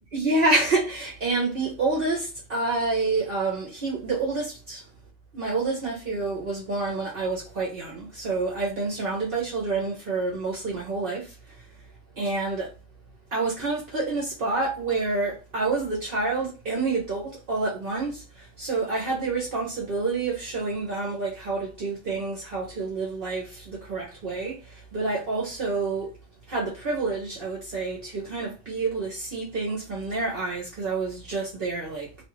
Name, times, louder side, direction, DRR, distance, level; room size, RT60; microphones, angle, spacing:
voice 1, 0.1-4.9 5.3-11.6 12.2-12.7 13.3-26.1 26.5-32.1, right 3 dB, 55° right, 0.7 m, -28 dB
2.6 x 2.3 x 3.0 m
omnidirectional pair, 1.4 m